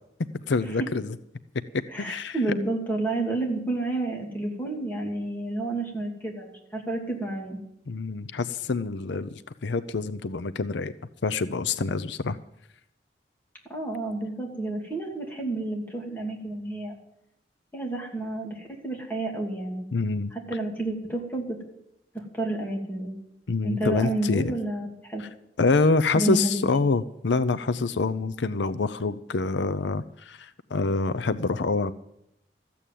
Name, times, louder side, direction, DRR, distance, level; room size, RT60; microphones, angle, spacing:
voice 1, 0.3-1.1 1.7-2.4 7.9-9.3 9.6-10.9 11.2-12.4 19.9-20.3 23.5-24.5 25.2-25.3 25.6-31.9, left 3 dB, 75° left, 12 dB, 0.6 m, -26 dB
voice 2, 1.9-7.6 13.7-17.0 17.7-19.8 20.3-21.6 22.1-23.1 23.6-25.2 26.1-26.6, right 2 dB, 10° left, 0 dB, 2.8 m, -30 dB
14.5 x 8.5 x 9.1 m, 0.81 s
head